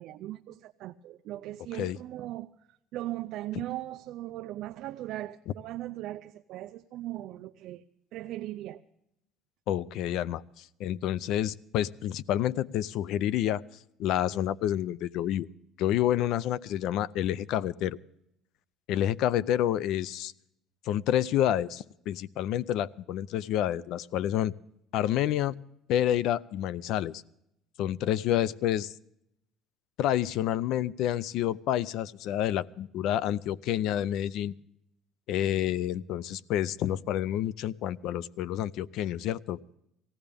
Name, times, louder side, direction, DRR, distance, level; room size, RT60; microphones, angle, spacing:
voice 1, 0.0-2.5 2.9-7.8 8.1-8.8, right 15 dB, 60° right, 6 dB, 0.5 m, -38 dB
voice 2, 9.7-13.6 14.0-15.5 15.8-18.0 18.9-20.3 20.8-24.5 24.9-25.5 25.9-27.2 27.8-28.9 30.0-34.5 35.3-39.6, left 11 dB, 65° left, 20 dB, 0.4 m, -29 dB
19.0 x 16.0 x 3.4 m, 0.78 s
cardioid pair, 155°, 0 cm